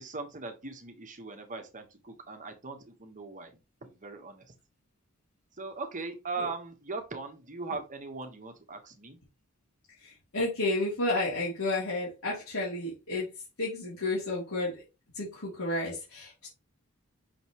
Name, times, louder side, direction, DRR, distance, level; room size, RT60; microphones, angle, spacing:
voice 1, 0.0-3.5 3.8-4.4 5.6-9.2, right 3 dB, 40° right, 6 dB, 1.2 m, -39 dB
voice 2, 10.0-14.8 15.1-16.5, left 2 dB, 80° left, -6 dB, 2.6 m, -32 dB
6.1 x 5.2 x 3.0 m, 0.27 s
head